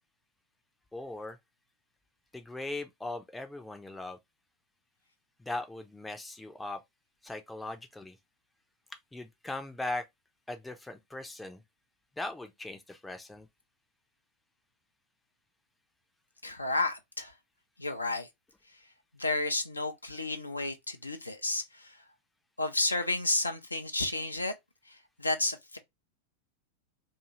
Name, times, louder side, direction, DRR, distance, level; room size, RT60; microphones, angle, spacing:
voice 1, 0.9-1.4 2.3-4.2 5.4-6.8 7.2-8.2 8.9-10.1 10.5-11.6 12.2-13.5, left 2 dB, 5° left, 0.4 m, -39 dB
voice 2, 16.4-17.3 17.8-18.3 19.2-22.0 22.6-24.5 24.9-25.8, left 2 dB, 85° left, 0.4 m, -32 dB
2.6 x 2.5 x 2.8 m
figure-of-eight pair, 90°, 0 cm